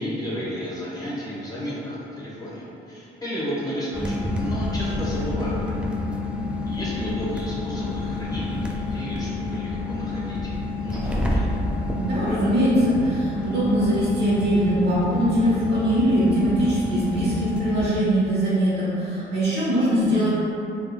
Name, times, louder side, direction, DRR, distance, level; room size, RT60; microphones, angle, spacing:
voice 1, 0.0-5.8 6.6-11.5, equal, 20° left, -7 dB, 0.9 m, -33 dB
sound 1, 3.9-17.9, left 2 dB, 5° right, 0.4 m, -28 dB
voice 2, 11.9-20.3, right 1 dB, 60° right, -9 dB, 1.3 m, -22 dB
3.5 x 3.4 x 2.2 m, 2.8 s
cardioid pair, 90°, 20 cm